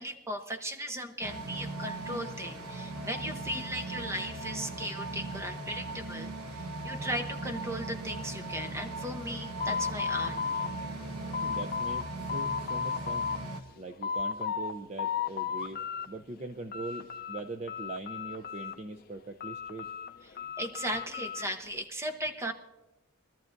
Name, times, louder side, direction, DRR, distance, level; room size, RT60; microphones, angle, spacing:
voice 1, 0.0-10.4 20.6-22.5, equal, 10° right, 6 dB, 0.9 m, -37 dB
sound 1, 1.2-13.6, right 2 dB, 90° right, 1.3 m, -39 dB
sound 2, 9.6-12.0 12.3-13.4 13.8-14.7 15.0-16.1 16.4-17.4 17.7-18.9 19.4-21.5, left 6 dB, 40° left, 0.5 m, -34 dB
voice 2, 11.4-13.3 13.8-19.9, right 2 dB, 30° right, 4 dB, 0.5 m, -41 dB
23.0 x 13.5 x 2.6 m, 1.0 s
head